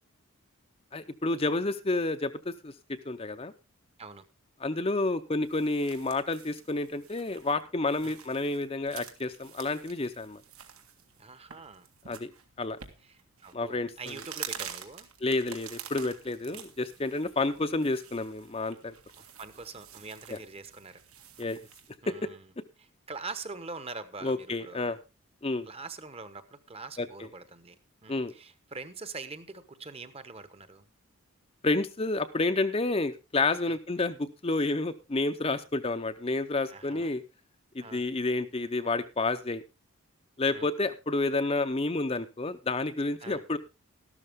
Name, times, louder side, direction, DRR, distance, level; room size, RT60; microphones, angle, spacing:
voice 1, 0.9-3.5 4.6-10.4 12.1-12.3 12.6-12.8 13.5-14.1 15.2-18.9 20.3-20.4 21.4-21.6 22.1-22.3 24.2-25.0 25.4-25.7 27.0-27.3 28.1-28.3 31.6-37.2 37.7-39.6 40.4-43.6, left 2 dB, 25° left, 9 dB, 0.6 m, -30 dB
sound 1, 5.3-22.0, right 9 dB, 80° right, 2.0 m, -47 dB
voice 2, 11.2-11.9 13.0-15.1 16.5-16.6 19.2-21.0 22.0-22.5 22.8-24.9 25.7-27.8 28.0-30.9 33.6-33.8 36.7-37.2 37.8-38.0 40.5-40.7 43.2-43.4, right 3 dB, 25° right, 12 dB, 1.0 m, -44 dB
13.5 x 12.5 x 3.6 m, 0.28 s
head